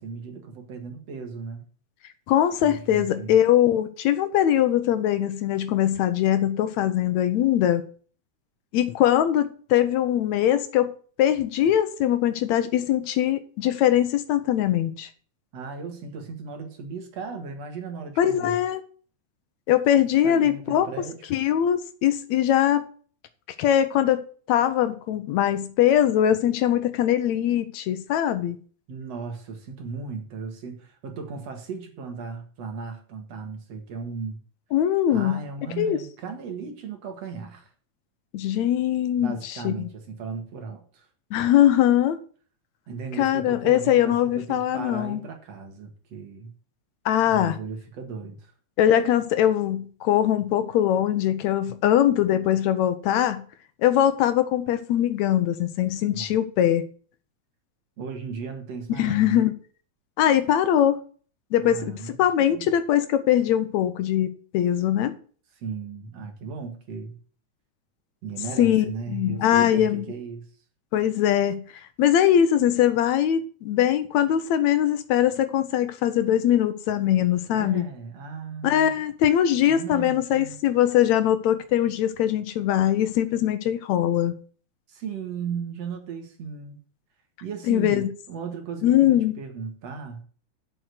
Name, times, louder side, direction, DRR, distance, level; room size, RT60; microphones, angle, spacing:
voice 1, 0.0-1.6 2.6-3.4 15.5-18.6 20.2-21.2 28.9-34.4 35.1-37.7 39.1-41.1 42.9-46.5 47.2-48.5 56.1-56.3 58.0-59.4 61.6-62.1 62.5-62.6 65.6-67.2 68.2-70.5 77.5-79.0 79.7-80.6 84.9-86.8 87.4-90.2, right 5 dB, 65° right, 2.8 m, -36 dB
voice 2, 2.3-7.8 8.7-10.9 11.2-15.1 18.2-18.8 19.7-20.9 21.3-22.8 23.6-28.6 34.7-35.4 35.8-36.0 38.3-39.9 41.3-42.2 43.2-45.2 47.1-47.6 48.8-53.4 53.8-56.8 59.0-59.5 60.2-61.0 61.5-65.1 68.6-70.1 70.9-71.6 72.0-77.9 78.6-84.3 87.7-88.1 88.8-89.3, left 11 dB, 75° left, 2.1 m, -22 dB
7.7 x 6.3 x 8.0 m
omnidirectional pair, 3.3 m